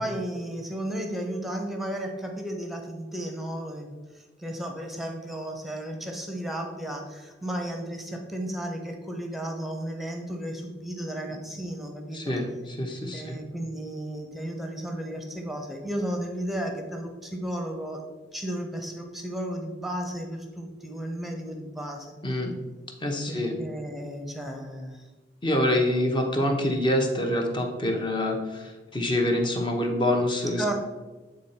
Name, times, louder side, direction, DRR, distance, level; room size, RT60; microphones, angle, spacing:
voice 1, 0.0-12.4 13.1-18.0 18.3-22.1 23.3-25.1 30.6-30.7, right 1 dB, ahead, 3 dB, 0.9 m, -34 dB
voice 2, 12.1-13.4 22.2-22.5 23.0-23.5 25.4-30.7, left 1 dB, 25° left, 2 dB, 1.0 m, -26 dB
8.5 x 3.9 x 4.3 m, 1.2 s
head